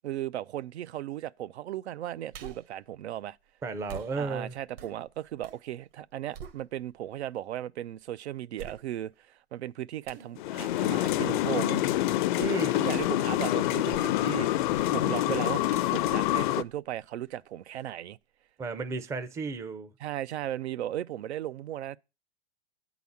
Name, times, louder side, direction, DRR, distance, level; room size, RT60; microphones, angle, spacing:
voice 1, 0.0-3.4 4.2-11.8 12.7-14.5 14.9-18.2 20.0-22.0, right 12 dB, 85° right, 0.6 m, -36 dB
sound 1, 2.3-2.8 3.9-5.7 6.0-7.1 7.6-7.7 8.6-9.2 10.1-10.4 12.4-12.6 13.0-13.3 13.7-14.3 14.7-15.0 15.7-17.4 17.8-17.9, right 7 dB, 60° right, 1.4 m, -47 dB
voice 2, 3.6-4.6 12.4-12.8 18.6-19.9, right 3 dB, 10° right, 0.4 m, -33 dB
sound 2, 10.4-16.6, left 14 dB, 50° left, 0.5 m, -27 dB
8.4 x 4.0 x 7.1 m
hypercardioid pair, 140°, 32 cm